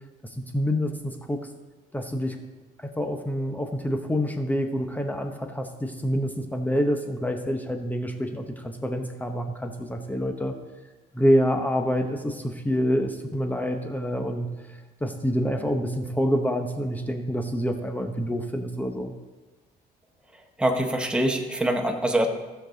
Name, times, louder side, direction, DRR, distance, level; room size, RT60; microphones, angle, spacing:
voice 1, 0.5-1.4 1.9-2.4 3.0-10.5 11.1-14.5 15.0-19.1, equal, 10° left, 5 dB, 0.9 m, -27 dB
voice 2, 20.6-22.3, right 1 dB, 5° right, 3 dB, 1.2 m, -24 dB
15.5 x 6.7 x 4.0 m, 1.2 s
cardioid pair, 110°, 17 cm